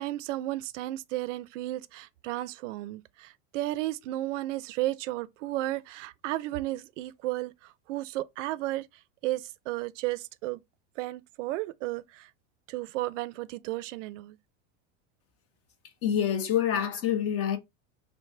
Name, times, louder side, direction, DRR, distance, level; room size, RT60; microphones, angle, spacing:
voice 1, 0.0-8.9 9.2-10.6 11.0-12.3 12.7-14.4, right 16 dB, 85° right, 0.5 m, -33 dB
voice 2, 16.0-17.6, left 9 dB, 40° left, 0.8 m, -26 dB
3.3 x 2.1 x 4.2 m
supercardioid pair, 130°, 36 cm